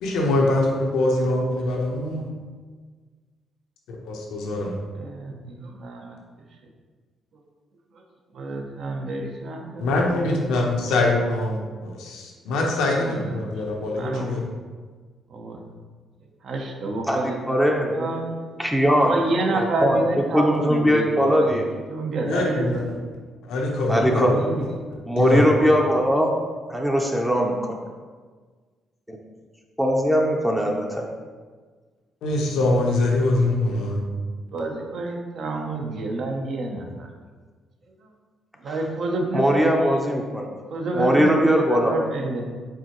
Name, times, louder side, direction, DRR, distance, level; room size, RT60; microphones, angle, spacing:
voice 1, 0.0-2.3 4.0-4.8 9.8-14.4 22.2-22.8 23.5-24.3 25.2-25.5 32.2-34.0, left 2 dB, 90° left, 0 dB, 0.8 m, -23 dB
voice 2, 5.0-6.2 7.3-7.4 7.9-8.0 8.3-10.5 12.7-13.5 14.0-14.4 15.3-15.7 16.4-17.6 17.9-18.3 19.0-21.6 21.9-22.8 23.8-24.6 34.5-37.1 38.0-38.1 38.6-40.0 40.7-42.4, right 2 dB, 65° right, 2 dB, 0.7 m, -29 dB
voice 3, 17.1-18.1 18.6-19.1 19.5-20.0 20.3-21.7 23.9-24.4 25.1-26.4 26.7-27.8 29.1-29.2 29.8-31.1 38.7-38.8 39.3-40.5 40.9-42.0, equal, 5° right, 0 dB, 0.5 m, -20 dB
4.7 x 3.8 x 3.0 m, 1.5 s
cardioid pair, 90°, 0 cm